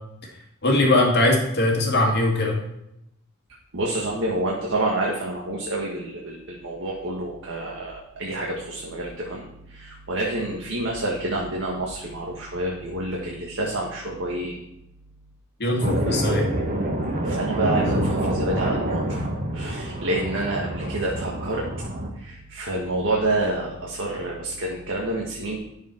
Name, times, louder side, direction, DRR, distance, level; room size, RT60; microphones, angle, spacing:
voice 1, 0.6-2.6 15.6-16.4, left 1 dB, 50° left, -1 dB, 2.2 m, -20 dB
voice 2, 3.7-14.6 17.2-19.2 19.5-21.7 22.1-25.6, right 2 dB, 60° right, -2 dB, 1.6 m, -28 dB
sound 1, 15.8-22.1, right 1 dB, 40° right, 1.4 m, -26 dB
11.5 x 7.0 x 4.5 m, 0.84 s
head